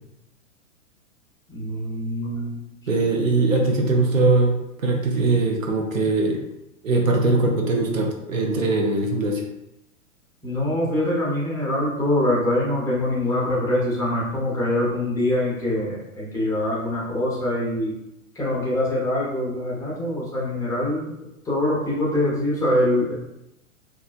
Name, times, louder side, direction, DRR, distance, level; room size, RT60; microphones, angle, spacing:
voice 1, 1.5-2.6 10.4-17.9 18.3-21.1 21.4-23.1, left 1 dB, 10° left, -7 dB, 0.6 m, -24 dB
voice 2, 2.9-6.4 6.8-9.4, right 3 dB, 75° right, 1 dB, 0.7 m, -21 dB
2.9 x 2.4 x 2.4 m, 0.86 s
figure-of-eight pair, 105°, 40 cm